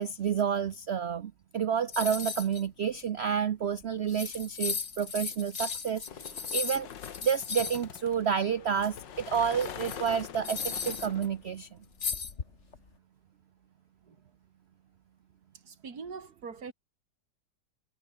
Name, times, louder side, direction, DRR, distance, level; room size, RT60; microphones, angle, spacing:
voice 1, 0.0-6.9 7.2-11.7, right 7 dB, 75° right, 0.6 m, -30 dB
sound 1, 1.9-2.6 3.0-3.1 3.8-3.9 4.1-7.8 9.3-11.3 12.0-12.8, left 5 dB, 40° left, 1.8 m, -36 dB
sound 2, 6.1-11.5, left 8 dB, 75° left, 2.1 m, -44 dB
voice 2, 15.5-16.7, right 5 dB, 55° right, 3.3 m, -43 dB
omnidirectional pair, 2.0 m